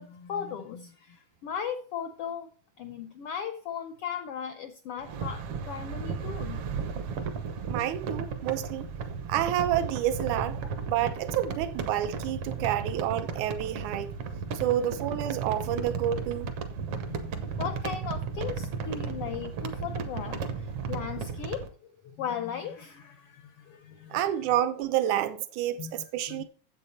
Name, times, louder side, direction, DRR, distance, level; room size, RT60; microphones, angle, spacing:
voice 1, 0.0-2.5 2.8-6.6 14.6-14.7 17.0-21.7 22.0-24.5 25.8-26.4, left 8 dB, 80° left, 1.3 m, -37 dB
sound 1, 5.0-21.7, right 5 dB, 60° right, 1.7 m, -34 dB
voice 2, 7.7-8.9 9.3-10.6 10.9-14.1 14.5-16.5 24.1-26.4, right 11 dB, 80° right, 2.2 m, -29 dB
8.6 x 7.8 x 4.2 m
omnidirectional pair, 3.5 m